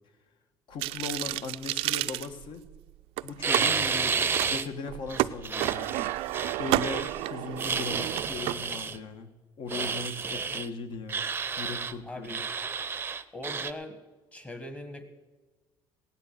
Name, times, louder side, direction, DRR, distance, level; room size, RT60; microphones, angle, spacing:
voice 1, 0.7-2.6 3.2-6.1 6.6-9.3 9.6-11.2 11.6-12.4, left 4 dB, 55° left, 9 dB, 1.5 m, -38 dB
sound 1, 0.8-2.8 3.2-3.7 4.2-4.5 4.8-8.5, right 17 dB, 85° right, 0.4 m, -31 dB
sound 2, 3.4-4.7 5.1-7.2 7.6-9.0 9.7-10.7 11.1-11.9 12.2-13.7, right 5 dB, 20° right, 0.6 m, -31 dB
voice 2, 12.0-12.5 13.3-14.0 14.3-15.0, left 1 dB, 15° left, 9 dB, 1.5 m, -40 dB
16.5 x 10.0 x 6.7 m, 1.3 s
cardioid pair, 135°, 9 cm